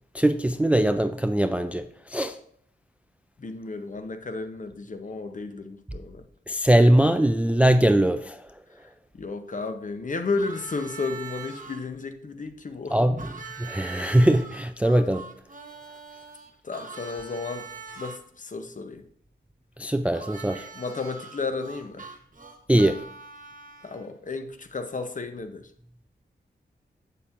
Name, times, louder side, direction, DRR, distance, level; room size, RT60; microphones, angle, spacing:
voice 1, 0.1-2.4 6.5-8.5 12.9-13.3 13.6-15.3 19.8-20.7 22.7-23.0, right 1 dB, 5° right, 0.3 m, -21 dB
voice 2, 3.4-6.2 9.1-13.0 16.6-17.7 18.0-19.0 20.7-22.1 23.8-25.7, left 3 dB, 45° left, 0.7 m, -33 dB
Harmonica, 10.4-11.8 13.2-18.2 20.1-24.1, right 5 dB, 45° right, 1.0 m, -42 dB
7.1 x 6.7 x 2.5 m
wide cardioid pair, 75°, 19 cm